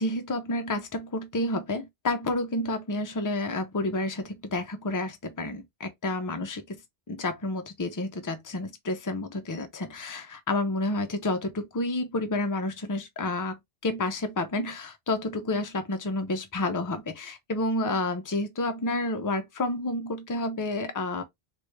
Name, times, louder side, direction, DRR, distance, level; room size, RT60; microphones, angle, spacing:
voice 1, 0.0-6.8 7.1-21.2, left 2 dB, 25° left, 0.5 m, -30 dB
3.3 x 2.9 x 3.1 m
omnidirectional pair, 1.0 m